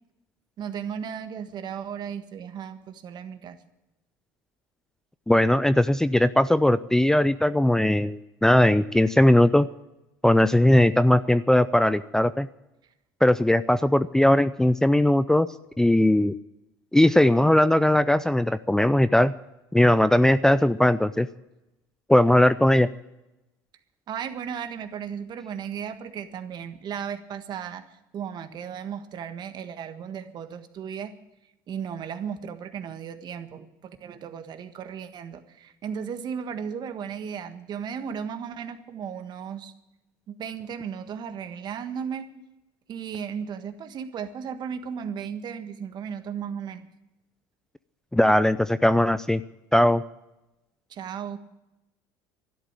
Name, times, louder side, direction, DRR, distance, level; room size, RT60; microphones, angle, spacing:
voice 1, 0.6-3.6 24.1-27.8 28.1-31.1 31.7-39.7 40.3-42.3 42.9-46.9 50.9-51.4, right 7 dB, 50° right, 9 dB, 1.5 m, -35 dB
voice 2, 5.3-9.7 10.2-12.5 13.2-15.5 15.8-16.3 16.9-19.3 19.7-21.3 22.1-22.9 48.1-49.4 49.7-50.0, left 1 dB, 5° left, 14 dB, 0.4 m, -19 dB
12.0 x 11.0 x 8.9 m, 0.94 s
supercardioid pair, 85°, 10 cm